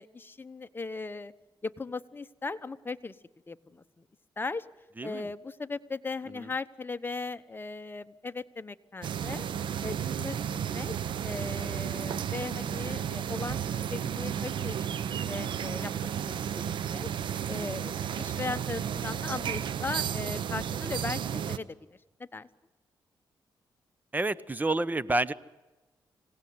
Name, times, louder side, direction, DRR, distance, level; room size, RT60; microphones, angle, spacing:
voice 1, 0.0-1.3 1.6-3.2 3.5-4.0 4.4-4.7 5.0-9.5 9.8-10.9 11.2-14.8 15.1-17.1 17.5-21.2 21.5-21.8 22.3-22.5, left 3 dB, 25° left, 11 dB, 1.1 m, -38 dB
voice 2, 5.0-5.3 6.3-6.5 24.1-25.3, right 2 dB, 20° right, 17 dB, 0.9 m, -29 dB
sound 1, 9.0-21.6, right 8 dB, 75° right, 0.9 m, -33 dB
26.0 x 18.0 x 9.6 m, 1.1 s
cardioid pair, 80°, 8 cm